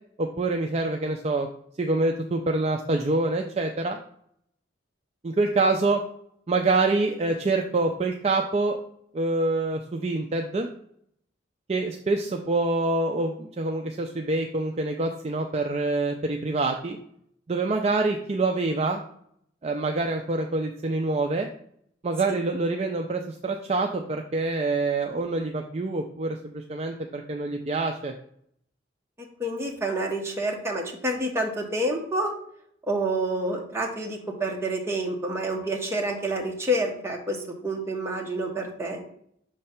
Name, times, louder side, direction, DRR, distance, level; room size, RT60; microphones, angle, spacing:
voice 1, 0.2-1.5 1.8-4.0 5.2-6.0 6.5-8.8 9.1-10.7 11.7-17.0 17.5-19.0 19.6-21.5 22.0-28.1, right 2 dB, 35° right, 3 dB, 0.4 m, -26 dB
voice 2, 29.2-32.3 32.8-39.0, right 1 dB, 15° right, 0 dB, 1.1 m, -28 dB
6.4 x 3.2 x 5.7 m, 0.68 s
head